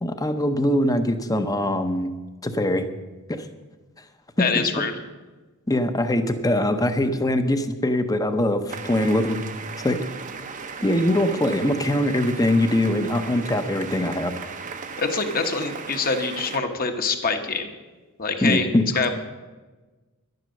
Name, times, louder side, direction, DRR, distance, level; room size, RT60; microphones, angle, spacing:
voice 1, 0.0-2.1 2.4-2.8 4.4-4.6 5.7-9.4 9.8-10.0 10.8-14.3 18.4-18.8, left 1 dB, 15° left, 8 dB, 0.8 m, -22 dB
voice 2, 4.4-4.9 15.0-17.7 18.2-18.7 18.9-19.1, left 4 dB, 40° left, 5 dB, 1.3 m, -25 dB
sound 1, 8.7-16.6, right 5 dB, 35° right, 0.7 m, -36 dB
11.5 x 11.0 x 6.5 m, 1.2 s
head